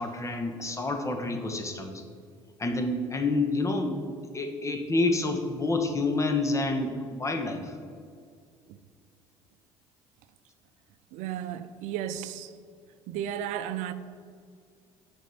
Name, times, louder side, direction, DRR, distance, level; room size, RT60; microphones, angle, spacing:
voice 1, 0.0-2.0 2.6-7.7, left 2 dB, 25° left, 1.2 m, -28 dB
voice 2, 11.1-12.6 13.1-13.9, right 10 dB, 70° right, 0.5 m, -34 dB
6.4 x 5.3 x 6.8 m
supercardioid pair, 75°, 13 cm